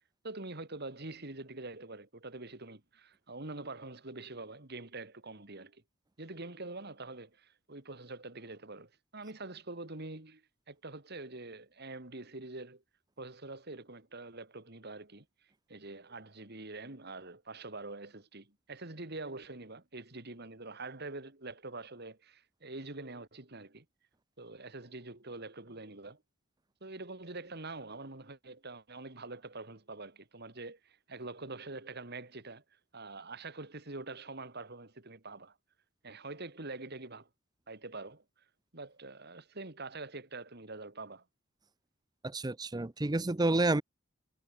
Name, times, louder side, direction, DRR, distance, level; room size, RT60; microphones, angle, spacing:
voice 1, 0.2-5.8 6.2-12.8 13.2-15.3 15.7-23.8 24.4-26.2 26.8-32.6 32.9-35.6 36.0-37.3 37.7-38.2 38.7-41.2, right 2 dB, 50° right, 2.6 m, -45 dB
voice 2, 42.2-43.8, right 2 dB, 20° right, 0.7 m, -29 dB
head